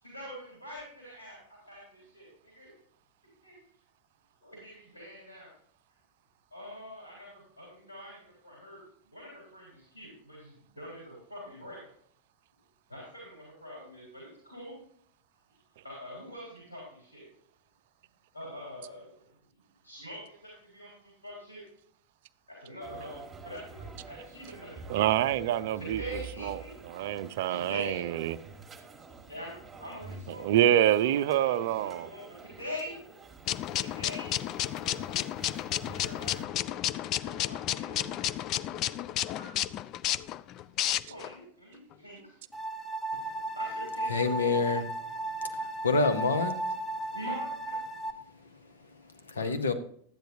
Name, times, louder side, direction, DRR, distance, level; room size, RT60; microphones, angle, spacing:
voice 1, 0.0-2.7 3.4-3.6 4.4-5.5 6.5-8.8 9.1-11.9 12.9-14.7 15.8-17.3 18.3-19.1 19.8-21.6 22.5-25.0 25.8-27.1 27.5-28.1 29.3-32.9 33.7-35.3 35.8-36.8 37.1-38.3 39.3-39.6 41.1-42.4 43.6-44.8 47.1-47.7 49.3-49.7, equal, 85° left, 3.8 m, -44 dB
sound 1, 22.8-36.4, right 4 dB, 15° right, 1.3 m, -48 dB
voice 2, 24.9-26.0 26.4-28.4 30.3-32.1, right 12 dB, 55° right, 0.4 m, -26 dB
sound 2, 33.5-41.3, left 12 dB, 35° left, 0.3 m, -32 dB
sound 3, 42.5-48.1, right 2 dB, 10° left, 0.8 m, -35 dB
voice 3, 44.1-44.8 45.5-46.6 49.4-49.7, left 4 dB, 70° left, 0.9 m, -27 dB
12.0 x 9.0 x 2.7 m
figure-of-eight pair, 90°, 0 cm